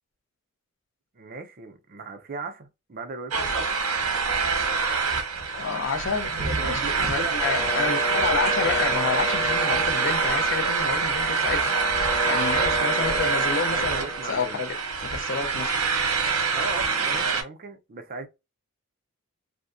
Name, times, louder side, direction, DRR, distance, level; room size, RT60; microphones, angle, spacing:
voice 1, 1.1-3.8 6.2-7.4 7.7-8.3 12.5-13.3 13.7-14.6 16.5-18.3, right 3 dB, 45° right, 0.5 m, -37 dB
sound 1, 3.3-17.4, right 5 dB, 75° right, 0.8 m, -25 dB
voice 2, 5.5-11.8 12.2-14.7 15.1-15.7, left 5 dB, 60° left, 0.5 m, -29 dB
sound 2, 7.3-15.1, left 1 dB, 85° left, 0.9 m, -33 dB
2.6 x 2.1 x 2.5 m
head